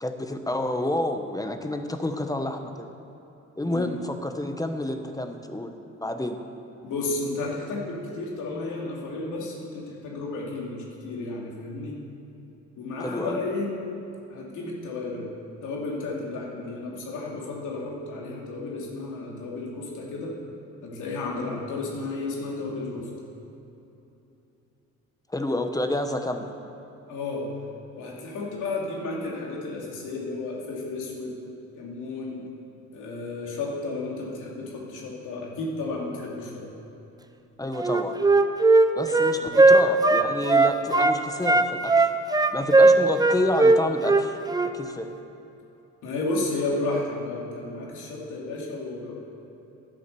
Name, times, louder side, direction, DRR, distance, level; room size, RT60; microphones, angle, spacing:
voice 1, 0.0-2.9 3.6-5.7 6.0-6.4 13.0-13.4 25.3-26.5 37.6-38.2 39.0-39.4 39.7-42.1 42.5-44.4 44.7-45.1, left 1 dB, 10° left, 6 dB, 0.9 m, -29 dB
voice 2, 3.6-3.9 6.8-12.0 12.8-13.7 14.3-15.3 15.6-20.3 20.8-23.1 27.1-27.5 28.0-31.4 31.8-32.4 32.9-36.7 39.4-39.5 46.0-49.2, left 2 dB, 85° left, -2 dB, 2.7 m, -32 dB
Wind instrument woodwind instrument, 37.8-41.2 41.4-44.7, right 3 dB, 15° right, 0.6 m, -18 dB
11.0 x 8.7 x 6.8 m, 2.9 s
cardioid pair, 90°, 30 cm